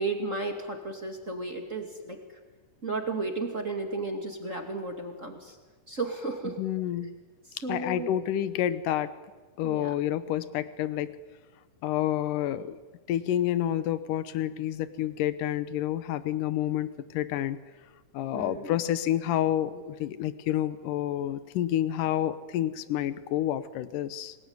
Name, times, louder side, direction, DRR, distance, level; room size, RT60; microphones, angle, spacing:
voice 1, 0.0-2.2 2.8-5.6 5.9-6.6 7.5-8.1 9.6-9.9 18.3-18.7, right 3 dB, 25° right, 3 dB, 2.4 m, -33 dB
voice 2, 6.6-7.1 7.6-9.1 9.6-11.2 11.8-12.8 13.1-17.6 18.1-24.4, left 12 dB, 85° left, 13 dB, 2.6 m, -29 dB
29.5 x 20.0 x 9.6 m, 1.3 s
omnidirectional pair, 3.7 m